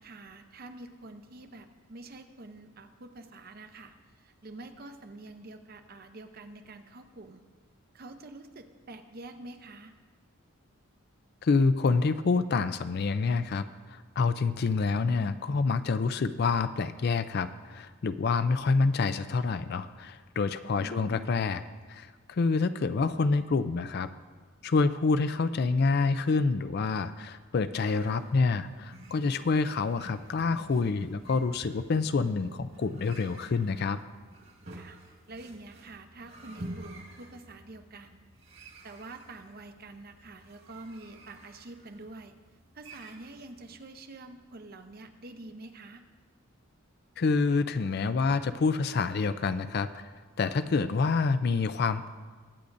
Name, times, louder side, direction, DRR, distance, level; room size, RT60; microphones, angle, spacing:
voice 1, 0.0-7.4 7.9-9.9 20.8-21.3 34.7-35.0 35.3-38.2 38.6-42.3 42.7-46.0, right 2 dB, 45° right, 7 dB, 0.7 m, -47 dB
voice 2, 11.4-21.6 21.9-24.1 24.6-34.0 47.2-50.1 50.4-52.1, left 4 dB, 50° left, 12 dB, 0.4 m, -27 dB
sound 1, 27.8-43.8, right 1 dB, 65° right, 1.9 m, -50 dB
22.0 x 8.4 x 2.6 m, 1.5 s
head